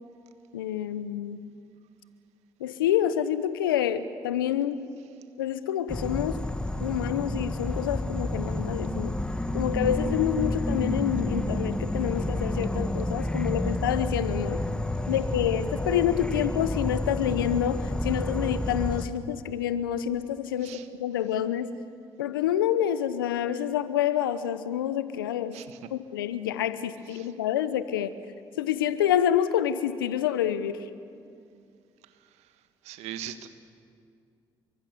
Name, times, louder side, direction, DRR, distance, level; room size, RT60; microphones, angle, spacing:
voice 1, 0.5-1.4 2.6-4.8 5.4-6.4 6.8-9.2 9.5-14.6 15.1-21.7 22.2-25.6 25.9-28.2 28.6-30.9, left 10 dB, 90° left, 14 dB, 0.9 m, -27 dB
Insect / Frog, 5.9-19.0, left 1 dB, 10° left, 1.9 m, -30 dB
voice 2, 32.8-33.5, right 10 dB, 75° right, 10 dB, 1.5 m, -38 dB
29.0 x 24.0 x 6.9 m, 2.4 s
hypercardioid pair, 45°, 11 cm